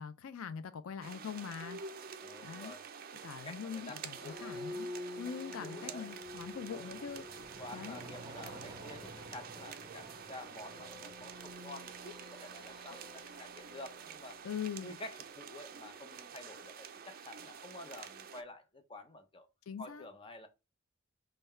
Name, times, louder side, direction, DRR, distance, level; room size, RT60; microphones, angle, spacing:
voice 1, 0.0-1.8 2.4-2.8 3.2-4.9 5.2-7.4 7.7-8.0 14.4-15.0 19.7-20.0, left 7 dB, 75° left, 0.4 m, -42 dB
sound 1, 1.0-18.4, right 6 dB, 45° right, 0.4 m, -49 dB
voice 2, 2.2-2.8 3.4-4.6 4.9-5.2 5.6-6.1 6.7-6.9 7.6-14.4 14.8-19.5 19.8-20.5, left 2 dB, 25° left, 0.7 m, -50 dB
sound 2, 3.8-15.2, left 2 dB, 5° right, 1.6 m, -50 dB
sound 3, 5.5-11.5, right 1 dB, 20° right, 0.9 m, -53 dB
5.5 x 2.2 x 4.3 m
head